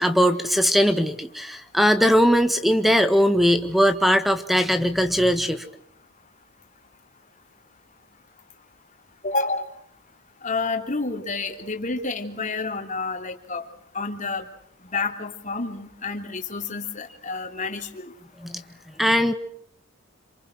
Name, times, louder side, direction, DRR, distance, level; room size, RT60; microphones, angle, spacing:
voice 1, 0.0-5.6 18.4-18.6 19.0-19.3, equal, ahead, 9 dB, 1.7 m, -20 dB
voice 2, 9.2-9.6 10.4-13.6 13.9-14.5 14.8-18.1, left 3 dB, 35° left, 3 dB, 3.2 m, -29 dB
28.0 x 27.0 x 6.2 m, 0.66 s
head